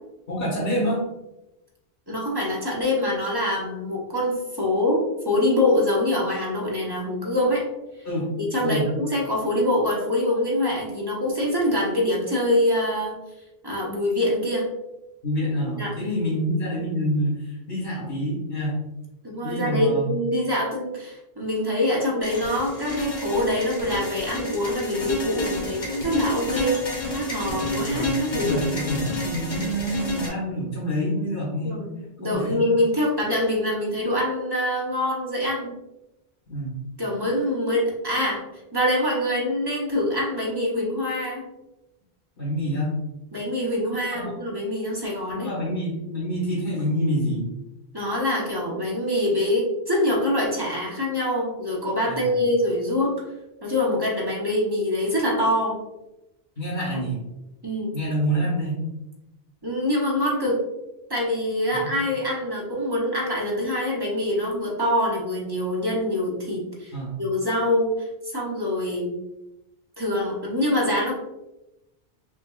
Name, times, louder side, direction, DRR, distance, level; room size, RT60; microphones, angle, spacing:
voice 1, 0.3-1.0 8.1-8.3 8.6-8.9 15.2-18.8 19.4-20.1 27.6-31.8 32.2-32.6 36.5-36.7 42.4-43.0 44.1-44.3 45.3-47.5 52.1-52.3 56.6-57.2 57.9-58.8 61.8-61.9 66.9-67.1, equal, 80° left, -7 dB, 1.8 m, -27 dB
voice 2, 2.1-7.6 8.4-13.2 13.6-14.7 15.8-16.3 19.2-28.6 31.6-35.7 37.0-38.4 38.7-41.5 43.3-45.5 47.9-53.1 53.6-55.8 57.6-58.0 59.6-60.6 61.1-69.2 70.0-71.1, left 1 dB, 25° right, -4 dB, 1.0 m, -25 dB
sound 1, 22.2-30.3, left 1 dB, 65° left, 1.5 m, -30 dB
5.6 x 2.6 x 2.4 m, 0.95 s
omnidirectional pair, 1.1 m